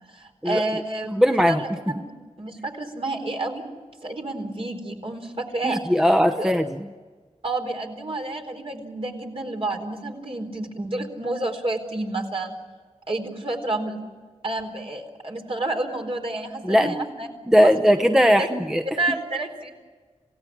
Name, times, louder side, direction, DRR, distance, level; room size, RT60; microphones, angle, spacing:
voice 1, 0.1-1.7 2.0-2.1 2.4-3.6 4.0-5.8 6.4-6.5 7.4-12.5 13.1-14.0 14.4-17.3 17.6-18.5 19.0-19.7, right 2 dB, 55° right, 2 dB, 4.2 m, -30 dB
voice 2, 1.1-1.6 5.6-6.9 16.6-16.9 17.5-18.8, equal, 5° right, 6 dB, 0.9 m, -19 dB
27.0 x 17.5 x 10.0 m, 1.4 s
wide cardioid pair, 85°, 12 cm